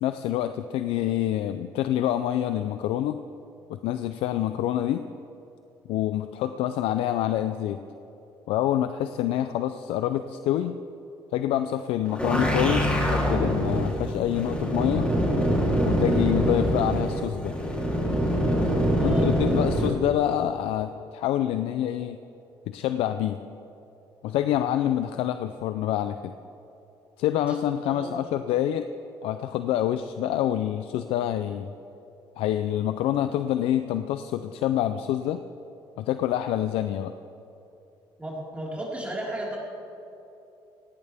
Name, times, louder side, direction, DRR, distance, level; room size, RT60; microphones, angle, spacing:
voice 1, 0.0-3.2 3.7-5.1 5.9-7.8 8.5-10.7 11.3-15.1 15.8-17.6 19.0-22.2 22.7-23.4 24.2-26.3 27.2-28.9 29.2-31.7 32.4-35.4 36.0-37.1, left 11 dB, 85° left, 10 dB, 0.5 m, -26 dB
sound 1, 12.0-19.9, equal, 10° left, 3.3 m, -24 dB
voice 2, 18.9-19.3 27.5-27.6 27.9-28.3 38.2-39.6, right 1 dB, 15° right, -5 dB, 4.5 m, -34 dB
18.5 x 17.5 x 3.5 m, 2.8 s
cardioid pair, 90°, 9 cm